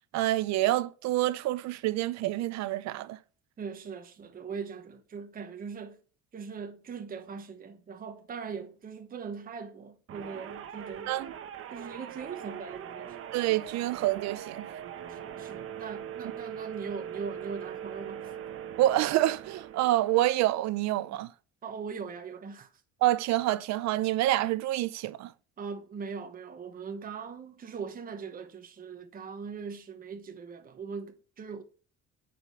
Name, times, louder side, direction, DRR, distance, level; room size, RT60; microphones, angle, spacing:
voice 1, 0.1-3.2 11.1-11.3 13.3-14.6 18.8-21.3 23.0-25.3, right 15 dB, 70° right, 0.7 m, -27 dB
voice 2, 3.6-6.0 6.3-11.1 11.7-13.2 15.1-18.3 21.6-22.7 25.6-31.6, right 5 dB, 30° right, 1.1 m, -40 dB
sound 1, 10.1-20.4, right 9 dB, 50° right, 1.2 m, -41 dB
8.7 x 5.1 x 5.7 m
cardioid pair, 135°, 29 cm